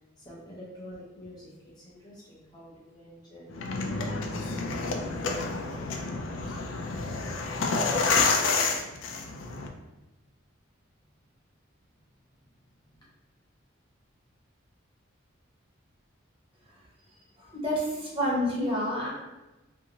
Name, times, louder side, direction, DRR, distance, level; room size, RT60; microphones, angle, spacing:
voice 1, 0.0-6.6 12.3-12.4 12.8-13.1, equal, 20° left, -6 dB, 0.5 m, -48 dB
sound 1, 3.5-9.7, left 4 dB, 75° left, 0.4 m, -29 dB
voice 2, 17.4-19.1, equal, 25° right, -6 dB, 0.9 m, -28 dB
2.7 x 2.6 x 2.8 m, 1.1 s
head